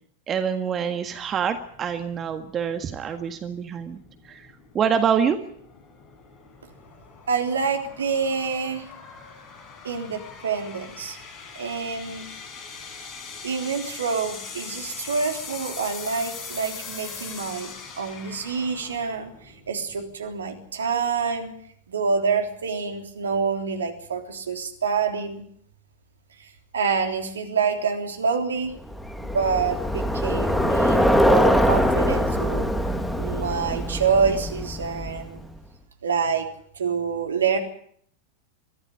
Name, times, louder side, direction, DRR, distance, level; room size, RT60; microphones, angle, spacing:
voice 1, 0.3-5.4, right 7 dB, 25° right, 8 dB, 1.7 m, -26 dB
sound 1, 1.2-20.3, left 5 dB, 30° left, 4.8 m, -41 dB
voice 2, 7.3-8.9 9.8-11.2 11.6-12.3 13.4-21.5 21.9-25.4 26.4-28.8 29.2-32.7 33.2-35.4 36.0-36.5 36.7-37.6, right 5 dB, 70° right, 5 dB, 3.5 m, -27 dB
Bicycle, 28.9-35.4, equal, 5° left, 2.2 m, -23 dB
23.0 x 15.0 x 9.9 m, 0.65 s
figure-of-eight pair, 90°, 0 cm